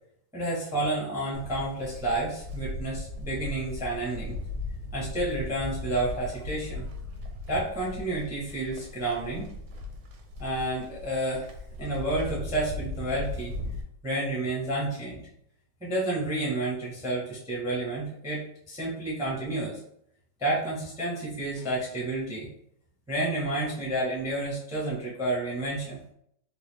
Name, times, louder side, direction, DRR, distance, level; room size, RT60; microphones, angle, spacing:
voice 1, 0.3-4.4 4.9-6.9 7.5-9.5 10.4-11.5 11.8-13.5 14.0-15.2 15.8-19.8 20.4-22.5 23.1-26.0, right 2 dB, 5° right, -6 dB, 0.6 m, -30 dB
Livestock farm animals working animals, 1.3-13.8, left 2 dB, 85° right, 1.3 m, -38 dB
3.9 x 2.3 x 3.3 m, 0.71 s
omnidirectional pair, 1.8 m